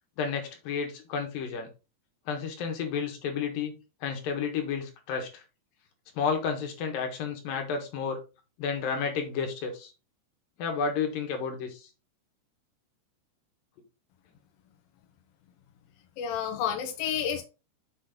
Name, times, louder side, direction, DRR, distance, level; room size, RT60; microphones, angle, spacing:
voice 1, 0.2-1.7 2.3-3.7 4.0-5.4 6.2-8.2 8.6-9.9 10.6-11.9, left 6 dB, 60° left, 4 dB, 2.8 m, -31 dB
voice 2, 16.2-17.4, left 8 dB, 80° left, 4 dB, 2.1 m, -30 dB
7.5 x 5.7 x 3.7 m, 0.30 s
omnidirectional pair, 5.4 m